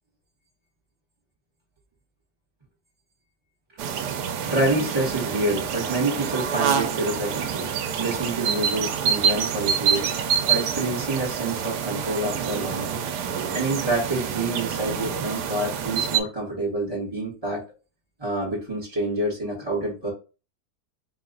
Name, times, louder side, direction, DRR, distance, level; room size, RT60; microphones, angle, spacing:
sound 1, 3.8-16.2, right 7 dB, 80° right, 1.2 m, -27 dB
voice 1, 4.4-7.7 8.0-10.1 10.5-13.0 13.5-17.6 18.2-20.1, right 2 dB, 20° right, -6 dB, 1.1 m, -27 dB
4.3 x 2.3 x 3.9 m, 0.33 s
omnidirectional pair, 1.8 m